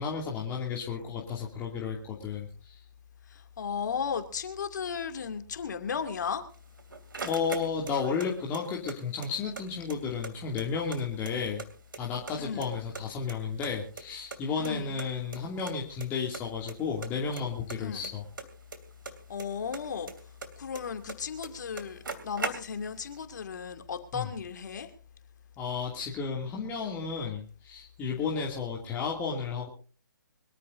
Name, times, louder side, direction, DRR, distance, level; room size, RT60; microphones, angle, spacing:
voice 1, 0.0-2.8 7.2-11.6 12.0-18.2 24.1-24.3 25.6-29.7, left 5 dB, 20° left, 2.5 m, -33 dB
voice 2, 3.3-6.5 12.4-12.8 14.6-15.0 17.8-18.1 19.3-20.1 20.6-24.9, left 6 dB, 60° left, 2.4 m, -35 dB
sound 1, 6.5-8.3 8.5-9.6 9.9-10.0 10.2-11.7 11.9-12.7 12.9-14.4 14.6-14.7 15.0-15.1 15.3-15.4 15.7-16.1 16.3-16.7 17.0-19.5 19.7-21.2 21.4-21.5 21.7-23.0, right 4 dB, 80° right, 2.8 m, -39 dB
25.0 x 14.0 x 2.6 m
hypercardioid pair, 145°, 11 cm